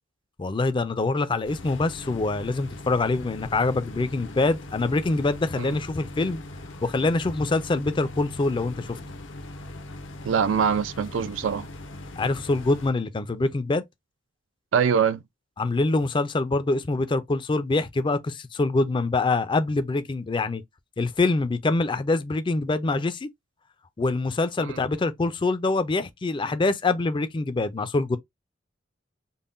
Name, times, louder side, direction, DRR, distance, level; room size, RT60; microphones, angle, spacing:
voice 1, 0.4-6.4 6.8-9.0 12.2-13.8 15.6-20.6 21.0-23.3 24.0-28.2, left 3 dB, 25° left, 0.4 m, -25 dB
sound 1, 1.4-12.9, left 1 dB, 75° left, 0.7 m, -40 dB
voice 2, 10.2-11.7 14.7-15.2 24.6-24.8, right 7 dB, 80° right, 0.4 m, -23 dB
5.4 x 2.2 x 2.4 m
head